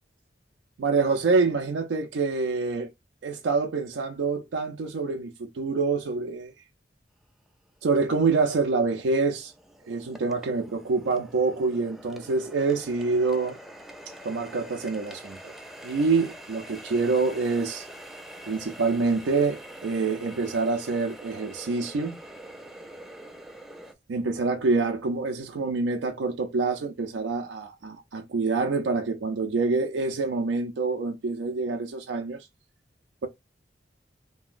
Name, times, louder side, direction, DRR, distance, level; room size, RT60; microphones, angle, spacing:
voice 1, 0.8-2.9 3.2-6.5 7.8-9.5 9.8-13.6 14.2-15.5 15.8-17.9 18.5-22.2 24.1-32.5, right 4 dB, 90° right, 0.4 m, -26 dB
Water tap faucet, 7.5-7.6 8.1-23.9, right 1 dB, ahead, 0.3 m, -45 dB
2.8 x 2.7 x 2.4 m
head